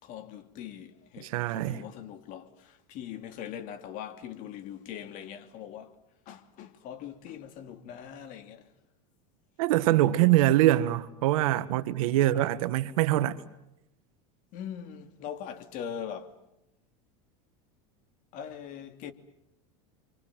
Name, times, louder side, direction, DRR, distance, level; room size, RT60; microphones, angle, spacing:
voice 1, 0.0-5.9 6.3-8.7 14.5-16.4 18.3-19.1, left 9 dB, 50° left, 2.9 m, -41 dB
voice 2, 1.2-1.8 9.6-13.4, right 14 dB, 75° right, 1.7 m, -24 dB
30.0 x 24.5 x 7.5 m
supercardioid pair, 130°, 18 cm